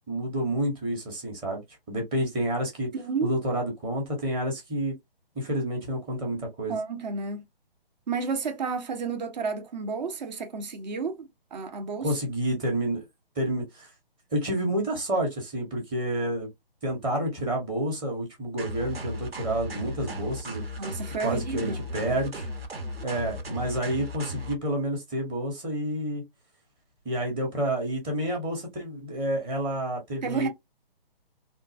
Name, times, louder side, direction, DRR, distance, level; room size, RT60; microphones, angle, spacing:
voice 1, 0.1-2.9 3.2-4.9 5.3-6.8 12.0-13.0 13.3-13.9 14.3-16.5 16.8-20.6 21.2-22.5 23.0-26.2 27.0-30.5, right 1 dB, 15° right, 1.1 m, -29 dB
voice 2, 2.9-3.3 6.7-7.4 8.1-12.1 20.8-21.8 30.2-30.5, right 5 dB, 45° right, 1.0 m, -31 dB
sound 1, 18.6-24.6, left 1 dB, 75° right, 1.4 m, -36 dB
3.7 x 2.4 x 2.6 m
figure-of-eight pair, 140°, 30 cm